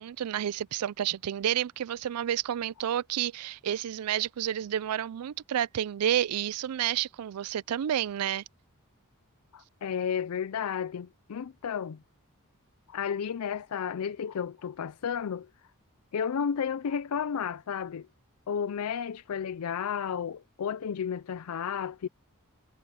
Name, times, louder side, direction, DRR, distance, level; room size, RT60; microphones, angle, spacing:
voice 1, 0.0-8.4, right 10 dB, 85° right, 0.4 m, -30 dB
voice 2, 9.5-12.0 12.9-15.5 16.1-18.1 18.5-22.1, left 7 dB, 80° left, 0.4 m, -32 dB
head